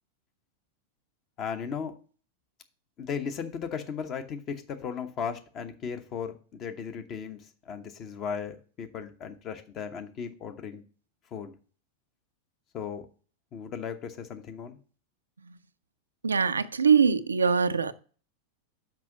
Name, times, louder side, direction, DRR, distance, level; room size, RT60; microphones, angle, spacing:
voice 1, 1.4-1.9 3.0-10.8 11.3-11.6 12.7-13.1 13.5-14.8, left 7 dB, 35° left, 1.0 m, -36 dB
voice 2, 16.2-17.9, right 6 dB, 75° right, 0.4 m, -23 dB
6.1 x 5.1 x 5.9 m
figure-of-eight pair, 90°, 0 cm